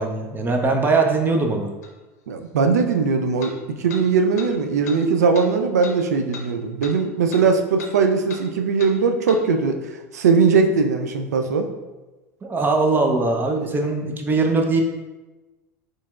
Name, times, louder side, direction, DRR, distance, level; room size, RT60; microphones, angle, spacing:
voice 1, 0.0-1.7 12.4-14.8, right 3 dB, 25° right, 3 dB, 0.6 m, -21 dB
sound 1, 1.8-1.9 3.4-3.5 3.9-4.0 4.4-4.5 4.8-5.0 5.3-5.5 5.8-6.0 6.3-6.5 6.8-7.0 7.3-7.4 7.8-7.9 8.3-8.4 8.8-8.9 9.3-9.4, left 4 dB, 80° left, 0.6 m, -37 dB
voice 2, 2.3-9.8 10.1-11.7, right 5 dB, 85° right, 5 dB, 0.4 m, -20 dB
4.2 x 3.2 x 2.4 m, 1.2 s
hypercardioid pair, 85°, 9 cm